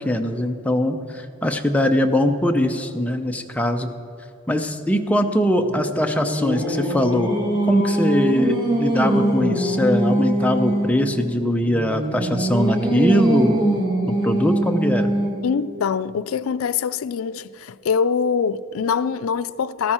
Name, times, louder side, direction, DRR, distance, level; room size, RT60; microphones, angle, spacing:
voice 1, 0.0-3.9 4.5-7.3 7.7-13.6 14.2-15.1, equal, 5° left, 0.7 m, -21 dB
Singing, 5.6-11.0 11.6-15.5, right 1 dB, 25° right, 2.9 m, -22 dB
voice 2, 15.4-19.9, left 6 dB, 85° left, 0.4 m, -23 dB
13.5 x 13.5 x 4.4 m
head